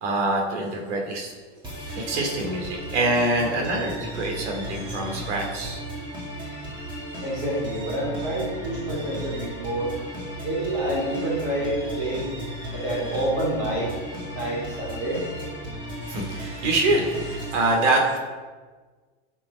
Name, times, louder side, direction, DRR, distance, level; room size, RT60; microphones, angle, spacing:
voice 1, 0.0-1.3 1.9-5.8 16.0-18.2, right 2 dB, 85° right, 0 dB, 2.8 m, -25 dB
sound 1, 1.6-17.6, equal, 15° right, 1.9 m, -35 dB
voice 2, 7.2-9.9 10.4-12.3 12.7-13.9 14.3-15.2, right 1 dB, 40° right, -6 dB, 3.5 m, -28 dB
15.5 x 6.0 x 4.3 m, 1.4 s
supercardioid pair, 175°, 34 cm